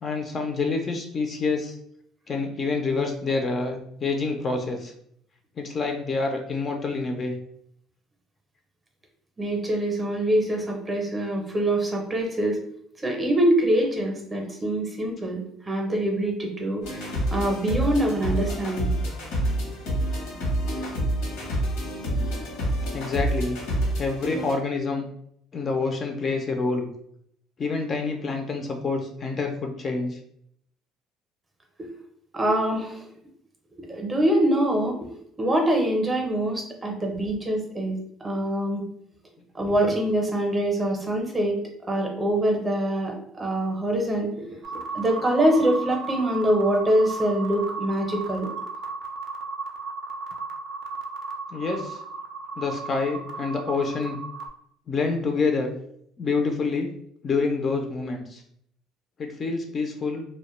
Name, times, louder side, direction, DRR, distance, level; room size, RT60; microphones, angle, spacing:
voice 1, 0.0-1.8 2.3-4.9 5.6-7.4 22.9-23.6 24.0-25.0 25.5-26.9 27.6-30.2 51.5-52.0 52.6-54.2 54.9-55.7 56.2-56.9 57.2-58.4 59.2-60.3, left 4 dB, 35° left, 4 dB, 0.3 m, -27 dB
voice 2, 9.4-12.6 13.0-18.9 22.1-22.2 32.3-33.0 33.9-35.0 35.4-38.8 39.5-41.6 41.9-44.5 44.7-48.5, right 1 dB, 20° right, 2 dB, 0.6 m, -24 dB
sound 1, 16.8-24.5, right 1 dB, 85° left, 0.8 m, -28 dB
sound 2, 44.6-54.5, right 4 dB, 65° right, 0.4 m, -35 dB
2.2 x 2.0 x 3.0 m, 0.69 s
cardioid pair, 120°, 0 cm